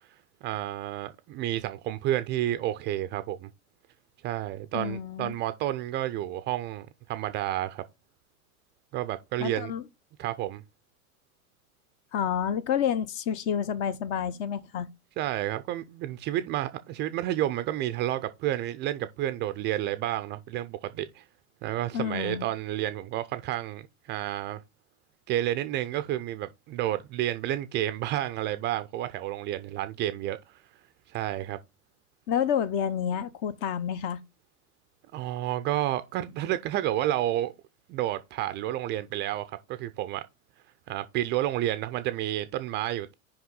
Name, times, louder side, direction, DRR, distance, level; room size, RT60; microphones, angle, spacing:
voice 1, 0.4-3.5 4.2-7.8 8.9-9.7 10.2-10.6 15.2-21.2 21.6-24.6 25.3-30.6 31.1-31.6 35.1-37.5 37.9-40.2 40.9-43.1, right 13 dB, 25° right, 0.4 m, -30 dB
voice 2, 4.7-5.3 9.4-9.8 12.1-14.9 21.9-22.5 32.3-34.2, left 8 dB, 40° left, 0.8 m, -29 dB
5.7 x 5.1 x 3.8 m
hypercardioid pair, 95°, 45 cm